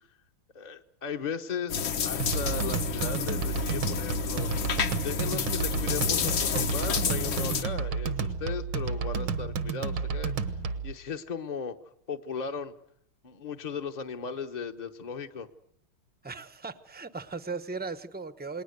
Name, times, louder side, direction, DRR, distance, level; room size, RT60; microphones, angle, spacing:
voice 1, 0.5-4.5 5.0-10.6 10.8-11.8 12.1-12.7 13.2-15.5, left 5 dB, 30° left, 4 dB, 0.8 m, -36 dB
sound 1, 1.7-7.6, left 7 dB, 75° left, 2.2 m, -30 dB
sound 2, 2.2-10.9, right 5 dB, 80° right, 2.2 m, -31 dB
voice 2, 16.2-18.6, right 4 dB, 10° right, 12 dB, 0.5 m, -37 dB
28.5 x 20.0 x 8.0 m, 0.68 s
omnidirectional pair, 2.3 m